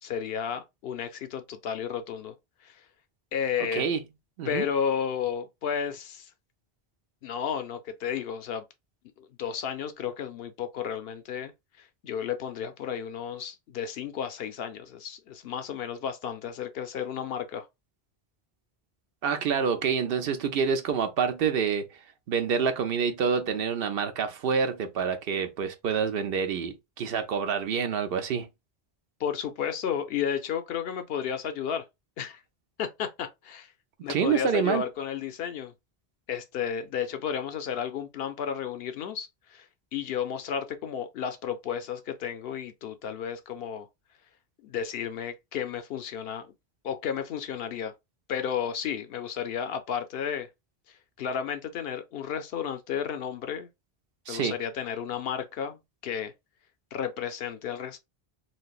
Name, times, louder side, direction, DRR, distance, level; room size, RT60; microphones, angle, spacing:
voice 1, 0.0-2.3 2.6-2.8 3.3-3.9 4.5-6.3 7.2-8.6 9.2-11.5 11.8-17.7 29.2-31.8 32.2-32.4 32.8-33.7 34.0-35.7 36.3-43.9 44.6-46.5 46.8-47.9 48.3-50.5 51.2-53.7 54.3-56.3 56.9-58.0, left 8 dB, 70° left, 0.8 m, -32 dB
voice 2, 19.2-22.0 22.3-28.5 34.1-34.8 54.3-54.6, right 6 dB, 70° right, 0.8 m, -27 dB
3.2 x 2.9 x 2.3 m
omnidirectional pair, 1.1 m